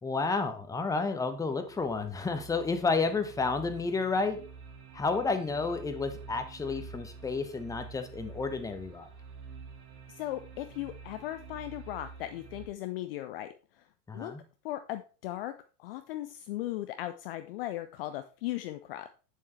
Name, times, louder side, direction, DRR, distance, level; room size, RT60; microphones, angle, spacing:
voice 1, 0.0-4.4 4.9-9.1 14.1-14.4, left 4 dB, 5° left, 8 dB, 0.9 m, -31 dB
sound 1, 1.3-12.7, right 5 dB, 65° right, 2.5 m, -48 dB
voice 2, 10.1-13.8 14.1-14.3 14.6-15.5 15.8-19.1, left 14 dB, 40° left, 10 dB, 0.5 m, -37 dB
8.5 x 7.1 x 3.2 m, 0.37 s
figure-of-eight pair, 90°, 48 cm